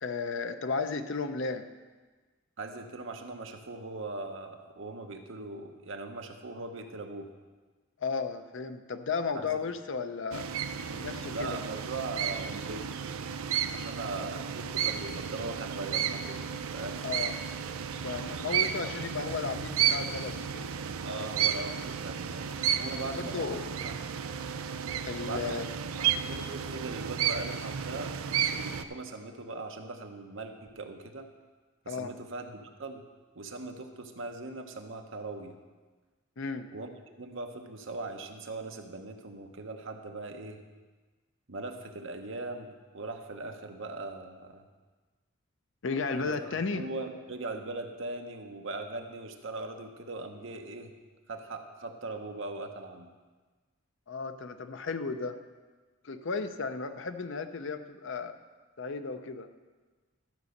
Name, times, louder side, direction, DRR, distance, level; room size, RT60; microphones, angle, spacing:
voice 1, 0.0-1.7 8.0-10.5 10.9-11.6 17.0-17.3 18.0-20.7 23.2-23.7 25.0-25.7 31.9-32.1 36.4-36.7 45.8-46.8 54.1-55.4 56.0-58.3 58.8-59.5, left 4 dB, 60° left, 9 dB, 0.6 m, -34 dB
voice 2, 2.6-7.3 9.3-9.6 11.3-13.0 13.7-16.5 16.7-17.1 21.0-23.9 25.2-25.6 26.0-28.2 28.5-31.3 31.8-33.0 33.3-35.6 36.7-36.9 37.2-40.6 41.5-44.6 46.2-51.0 51.3-53.1, right 2 dB, 60° right, 5 dB, 0.9 m, -40 dB
sound 1, 10.3-28.8, right 8 dB, 75° right, 0.5 m, -33 dB
12.5 x 5.4 x 6.6 m, 1.3 s
head